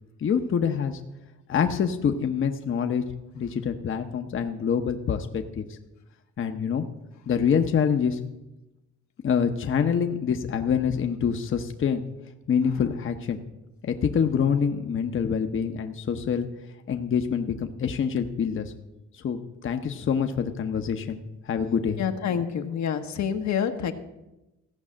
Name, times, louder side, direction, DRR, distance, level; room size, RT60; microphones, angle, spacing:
voice 1, 0.2-1.0 1.5-3.0 3.3-5.8 6.4-6.9 7.3-8.2 9.2-12.0 12.5-13.4 13.8-16.5 16.9-18.7 19.1-21.2 21.5-22.0, left 7 dB, 40° left, 6 dB, 0.8 m, -26 dB
voice 2, 22.0-23.9, left 8 dB, 70° left, 6 dB, 1.1 m, -27 dB
15.5 x 5.5 x 7.3 m, 0.97 s
cardioid pair, 90°, 30 cm